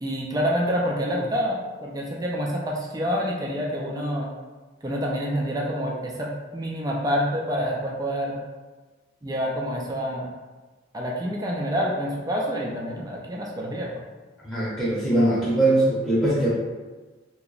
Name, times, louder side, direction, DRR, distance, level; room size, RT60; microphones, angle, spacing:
voice 1, 0.0-4.3 4.8-8.4 9.2-10.3 10.9-14.0, equal, 20° right, -2 dB, 0.4 m, -27 dB
voice 2, 14.4-16.5, right 1 dB, ahead, -9 dB, 0.8 m, -21 dB
2.9 x 2.2 x 3.8 m, 1.3 s
head